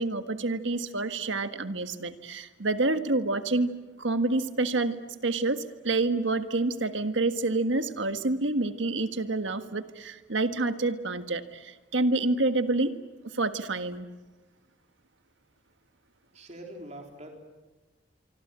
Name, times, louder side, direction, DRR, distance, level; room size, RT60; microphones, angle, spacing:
voice 1, 0.0-3.7 4.0-5.0 5.2-12.9 13.3-14.1, right 2 dB, 90° right, 9 dB, 1.6 m, -28 dB
voice 2, 16.3-17.3, right 1 dB, 35° right, 2 dB, 3.8 m, -43 dB
25.5 x 24.5 x 8.9 m, 1.2 s
head